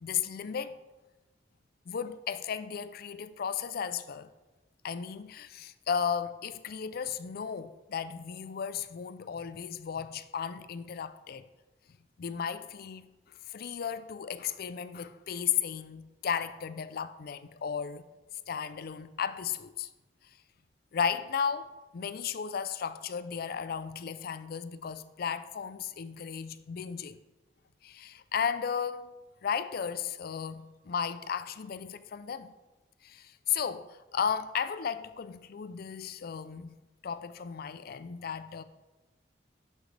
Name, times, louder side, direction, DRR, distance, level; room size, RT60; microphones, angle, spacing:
voice 1, 0.0-0.8 1.9-4.3 4.8-11.4 12.2-18.0 18.5-19.9 20.9-21.7 21.9-27.2 27.8-29.1 29.4-32.5 33.0-36.7 37.0-38.6, left 7 dB, 55° left, 0.4 m, -35 dB
11.0 x 6.4 x 3.3 m
head